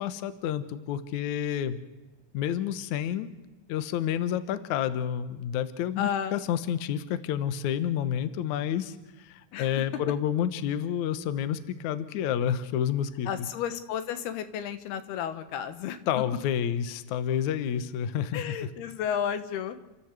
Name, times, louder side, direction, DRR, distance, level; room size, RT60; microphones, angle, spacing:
voice 1, 0.0-1.8 2.3-3.3 3.7-13.5 16.1-18.7, left 9 dB, 65° left, 12 dB, 2.0 m, -29 dB
voice 2, 6.0-6.4 9.5-9.8 13.3-16.0 18.3-19.8, left 8 dB, 80° left, 11 dB, 3.2 m, -32 dB
29.5 x 14.0 x 8.1 m, 1.1 s
omnidirectional pair, 4.5 m